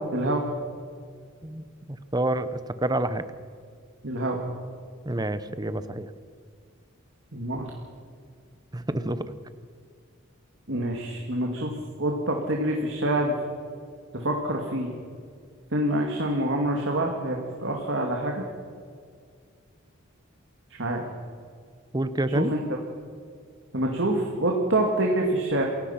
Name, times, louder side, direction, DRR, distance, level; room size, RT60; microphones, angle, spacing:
voice 1, 0.1-0.4 4.0-4.4 7.3-7.7 10.7-11.7 12.0-13.4 14.1-14.9 15.7-18.4 20.8-21.0 22.3-22.6 23.7-25.6, right 1 dB, 60° right, 0 dB, 2.3 m, -26 dB
voice 2, 1.4-2.5 2.8-3.2 5.0-6.1 8.7-9.2 21.9-22.5, right 1 dB, 20° right, 12 dB, 0.8 m, -28 dB
28.5 x 16.5 x 5.9 m, 2.1 s
head